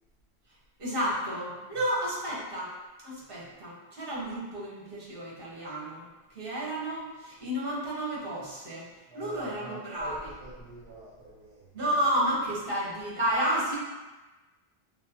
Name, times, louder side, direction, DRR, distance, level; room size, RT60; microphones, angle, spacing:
voice 1, 0.8-2.7 3.0-6.1 6.3-8.9 9.1-10.3 11.7-13.8, equal, 55° right, -6 dB, 1.4 m, -31 dB
voice 2, 9.1-11.9, right 1 dB, 80° right, -7 dB, 1.0 m, -46 dB
6.1 x 2.1 x 2.8 m, 1.1 s
omnidirectional pair, 1.1 m